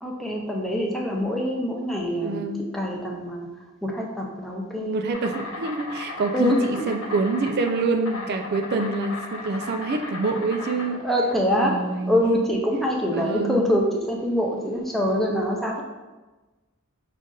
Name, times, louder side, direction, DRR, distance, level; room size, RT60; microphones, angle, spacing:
voice 1, 0.0-3.5 3.8-5.0 6.3-6.8 11.0-11.7 12.1-15.8, equal, ahead, -2 dB, 0.5 m, -24 dB
voice 2, 2.2-2.7 4.8-11.1 11.6-12.4 13.1-13.7, right 3 dB, 45° right, 6 dB, 0.3 m, -26 dB
Insect, 5.1-15.1, left 2 dB, 70° left, 0.8 m, -37 dB
5.2 x 2.4 x 3.8 m, 1.2 s
head